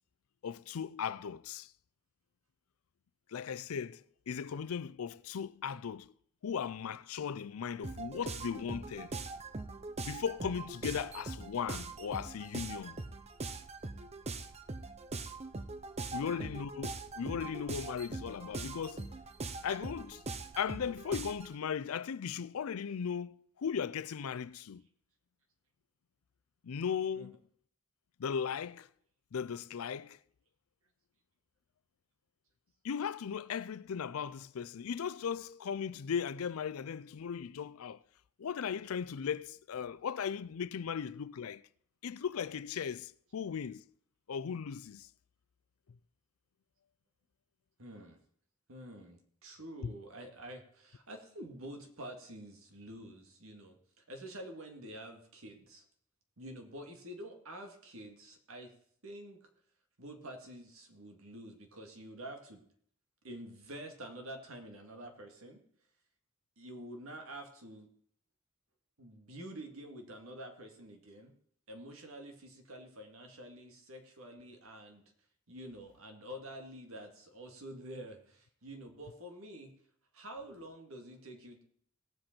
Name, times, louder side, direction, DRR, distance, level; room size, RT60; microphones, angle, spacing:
voice 1, 0.4-1.7 3.3-6.1 6.4-9.1 10.0-13.0 16.1-19.1 19.6-20.2 20.6-24.8 26.6-27.4 28.2-28.9 29.3-30.2 32.8-38.0 38.4-41.6 42.0-43.8 44.3-45.1, left 7 dB, 85° left, 0.4 m, -37 dB
sound 1, 7.8-21.5, right 3 dB, 30° right, 0.7 m, -42 dB
voice 2, 16.1-16.5 27.2-27.3 47.8-48.2 48.7-55.8 56.4-58.7 59.0-59.5 60.0-62.6 63.2-65.6 66.6-67.9 69.0-71.3 71.7-75.0 75.5-79.7 80.1-81.6, right 1 dB, 75° right, 2.0 m, -48 dB
17.5 x 7.7 x 4.4 m
head